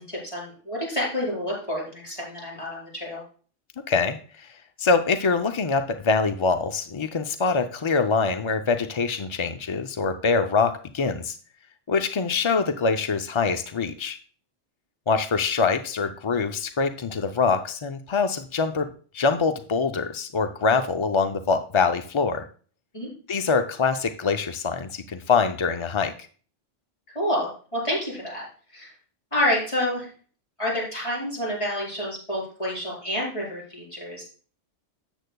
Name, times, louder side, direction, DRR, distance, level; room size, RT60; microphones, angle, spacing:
voice 1, 0.0-3.2 20.7-20.8 22.9-23.1 27.1-28.4 28.7-28.9 29.3-30.1 30.6-34.2, left 1 dB, 25° left, -5 dB, 4.8 m, -28 dB
voice 2, 3.9-11.4 11.9-14.2 15.1-22.4 23.3-26.1, left 4 dB, 45° left, 7 dB, 0.3 m, -24 dB
13.0 x 8.1 x 2.3 m, 0.42 s
omnidirectional pair, 1.2 m